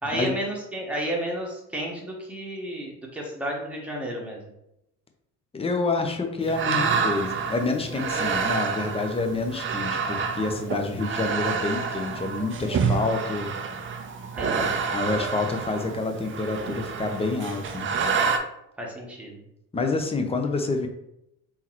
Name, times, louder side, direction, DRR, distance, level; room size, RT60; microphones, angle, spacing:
voice 1, 0.0-4.4 7.9-8.3 14.4-14.7 18.8-19.4, right 1 dB, 5° right, -2 dB, 1.2 m, -32 dB
voice 2, 5.5-13.5 14.6-17.9 19.7-20.9, left 3 dB, 15° left, 4 dB, 0.6 m, -28 dB
sound 1, 6.4-18.4, right 5 dB, 30° right, 0.5 m, -28 dB
3.7 x 2.9 x 3.0 m, 0.81 s
hypercardioid pair, 60°, 45 cm